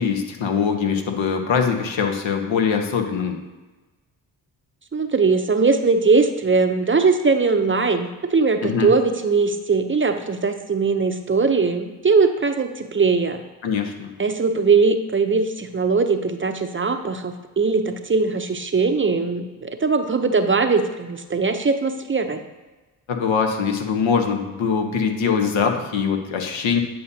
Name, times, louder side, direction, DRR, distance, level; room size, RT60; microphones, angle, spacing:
voice 1, 0.0-3.4 8.6-8.9 13.6-14.1 23.1-26.8, left 6 dB, 70° left, 4 dB, 1.2 m, -22 dB
voice 2, 4.9-13.4 14.2-22.4, right 4 dB, 25° right, 7 dB, 0.7 m, -20 dB
9.3 x 5.5 x 2.8 m, 1.2 s
supercardioid pair, 50°, 48 cm